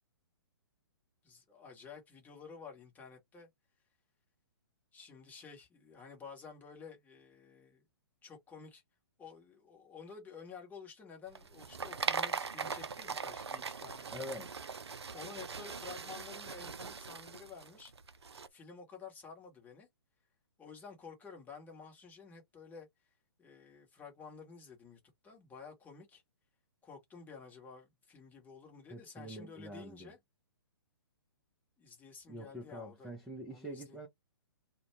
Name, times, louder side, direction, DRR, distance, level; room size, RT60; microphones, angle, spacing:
voice 1, 1.2-3.5 4.9-7.8 8.2-8.8 9.2-14.1 15.1-17.9 18.5-19.9 20.6-22.9 23.4-26.2 26.8-30.2 31.8-33.1 33.5-34.0, left 5 dB, 10° left, 1.1 m, -52 dB
sound 1, 11.3-18.5, right 5 dB, 85° right, 0.4 m, -40 dB
voice 2, 14.1-14.5 28.9-30.1 32.3-34.1, equal, 5° right, 0.7 m, -45 dB
2.3 x 2.2 x 3.1 m
figure-of-eight pair, 125°, 13 cm